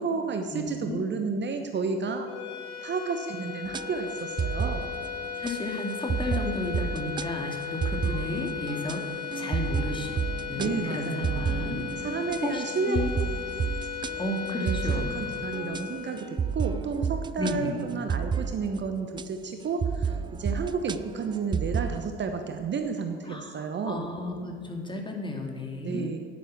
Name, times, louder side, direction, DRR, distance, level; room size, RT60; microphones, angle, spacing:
voice 1, 0.0-2.3 2.8-4.9 10.6-11.5 12.0-13.0 14.1-14.2 14.5-14.8 15.1-16.3 16.5-24.0 25.8-26.2, right 5 dB, 35° right, 6 dB, 1.1 m, -31 dB
voice 2, 0.5-1.0 5.4-10.1 10.5-11.8 12.4-13.1 14.2-15.2 17.4-17.8 23.3-26.1, left 2 dB, 15° left, 2 dB, 2.3 m, -33 dB
sound 1, 2.2-16.8, left 8 dB, 50° left, 2.3 m, -37 dB
sound 2, 3.7-19.2 19.8-22.1, right 6 dB, 15° right, 0.3 m, -32 dB
10.5 x 9.6 x 7.3 m, 2.2 s
figure-of-eight pair, 60°, 32 cm